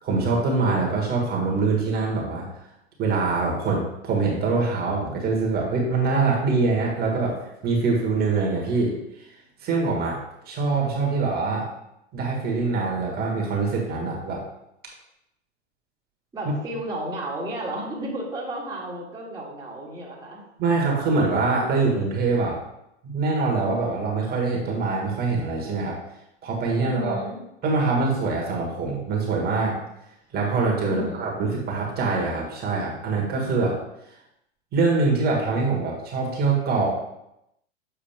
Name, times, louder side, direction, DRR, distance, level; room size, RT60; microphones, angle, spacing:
voice 1, 0.0-2.5 3.0-9.0 9.6-10.2 10.4-11.7 12.1-14.4 20.6-22.6 23.0-26.0 26.4-27.2 27.6-29.8 30.3-33.8 34.7-36.9, right 3 dB, 25° right, -1 dB, 1.6 m, -24 dB
voice 2, 16.3-20.4 26.8-27.4 30.8-31.3, right 1 dB, 10° right, -5 dB, 1.5 m, -33 dB
7.3 x 4.6 x 3.5 m, 0.84 s
figure-of-eight pair, 100°, 35 cm